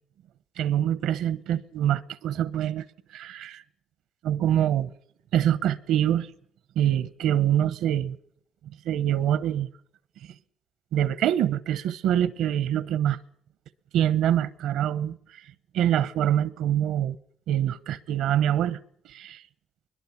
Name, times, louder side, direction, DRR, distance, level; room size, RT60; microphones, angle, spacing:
voice 1, 0.6-2.8 3.1-3.6 4.2-4.9 5.3-6.3 6.8-8.2 8.6-9.7 10.9-13.2 13.9-17.2 17.5-18.8 19.1-19.4, right 11 dB, 85° right, 0.8 m, -25 dB
21.5 x 21.5 x 7.1 m
cardioid pair, 90°, 0 cm